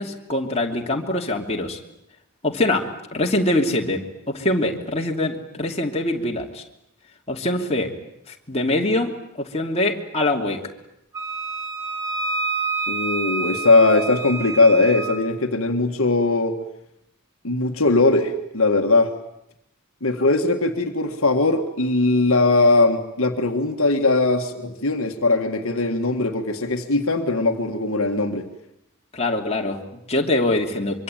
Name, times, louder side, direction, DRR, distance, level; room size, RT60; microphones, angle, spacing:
voice 1, 0.0-1.8 2.4-2.8 3.1-4.0 4.3-6.6 7.3-7.9 8.3-9.1 9.4-10.6 29.1-31.0, left 1 dB, 30° left, 0 dB, 2.7 m, -23 dB
Wind instrument woodwind instrument, 11.1-15.2, right 3 dB, 15° right, 3.3 m, -28 dB
voice 2, 12.9-16.6 17.4-19.1 20.0-28.5, left 2 dB, 65° left, 4 dB, 1.8 m, -20 dB
25.0 x 24.0 x 9.1 m, 0.81 s
head